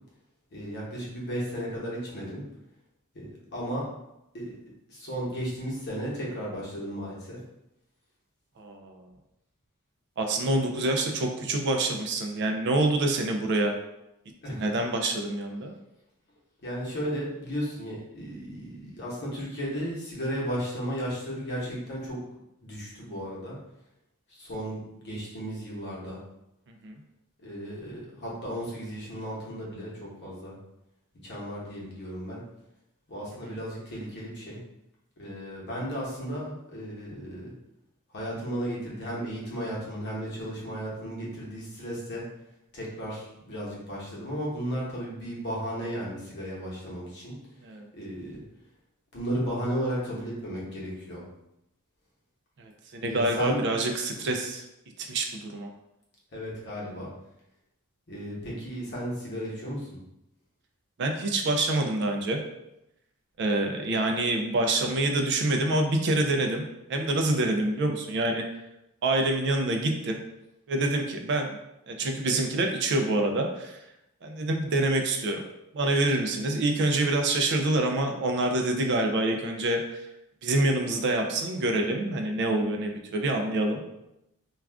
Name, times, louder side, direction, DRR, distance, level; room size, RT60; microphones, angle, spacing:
voice 1, 0.5-2.4 3.1-3.3 3.5-3.8 4.3-4.6 4.9-7.4 14.4-14.7 16.6-22.2 22.6-23.6 24.3-26.2 27.4-30.5 31.2-32.4 33.1-34.6 35.2-37.5 38.1-42.2 42.7-47.3 47.9-48.4 49.1-51.2 53.0-53.6 54.1-54.3 56.3-57.1 58.1-59.9, equal, 50° left, -5 dB, 0.9 m, -34 dB
voice 2, 8.6-9.1 10.2-13.7 14.5-15.7 26.8-27.0 33.5-33.6 47.6-47.9 52.6-54.6 55.0-55.7 61.0-62.4 63.4-66.6 66.9-68.5 69.0-70.2 70.7-71.6 71.9-73.8 74.2-75.4 75.7-80.0 80.4-83.8, right 2 dB, 50° right, 3 dB, 0.3 m, -26 dB
2.3 x 2.3 x 3.4 m, 0.87 s
head